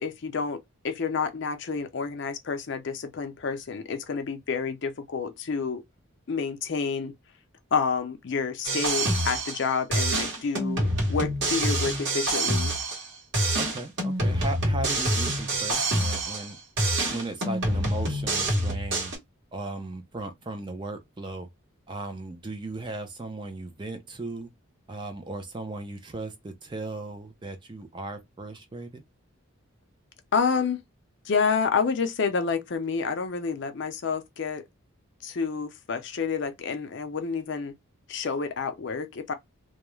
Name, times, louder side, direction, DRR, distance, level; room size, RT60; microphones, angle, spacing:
voice 1, 0.0-5.8 6.3-7.1 7.7-12.7 30.3-30.8 31.3-34.6 35.2-37.7 38.1-39.3, left 5 dB, 55° left, 0.5 m, -29 dB
sound 1, 8.6-9.7 9.9-13.1 13.3-16.5 16.8-19.2, right 1 dB, 55° right, 0.9 m, -26 dB
voice 2, 13.6-16.6 17.1-19.1 19.5-21.5 21.9-24.5 24.9-29.0, right 2 dB, 20° right, 0.4 m, -37 dB
2.3 x 2.0 x 2.9 m
head